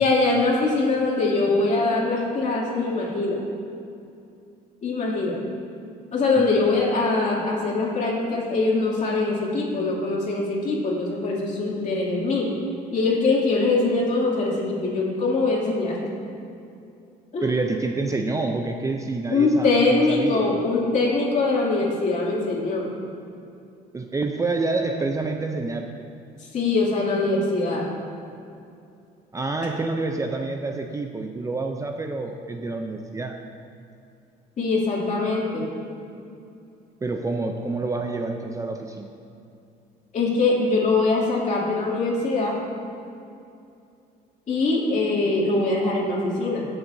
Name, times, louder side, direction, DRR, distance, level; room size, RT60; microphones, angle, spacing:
voice 1, 0.0-3.4 4.8-5.4 6.1-12.5 12.9-16.0 17.3-17.5 19.3-22.9 26.5-27.8 34.6-35.6 40.1-42.6 44.5-46.6, left 3 dB, 45° left, -4 dB, 2.6 m, -22 dB
voice 2, 17.4-20.5 23.9-25.9 29.3-33.4 37.0-39.1, right 3 dB, 20° right, 4 dB, 0.5 m, -28 dB
19.0 x 7.0 x 2.7 m, 2.6 s
cardioid pair, 110°, 17 cm